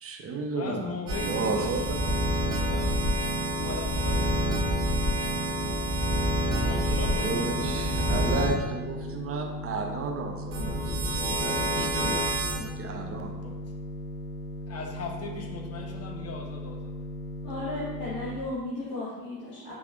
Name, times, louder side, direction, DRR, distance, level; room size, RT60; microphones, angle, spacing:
voice 1, 0.0-1.8 7.0-10.8 11.0-12.4 12.8-13.3, right 4 dB, 30° right, 2 dB, 0.6 m, -33 dB
voice 2, 0.5-1.7 2.4-3.0 3.6-4.8 6.4-8.3 13.4-13.5 14.7-16.9, left 4 dB, 30° left, 1 dB, 0.8 m, -39 dB
sound 1, 1.1-8.5 10.5-12.6, right 1 dB, 70° right, 1.3 m, -27 dB
sound 2, 7.5-18.4, left 1 dB, 80° left, 0.6 m, -38 dB
voice 3, 17.4-19.7, left 2 dB, 55° left, -9 dB, 1.4 m, -35 dB
4.7 x 3.4 x 2.5 m, 1.2 s
figure-of-eight pair, 55°, 48 cm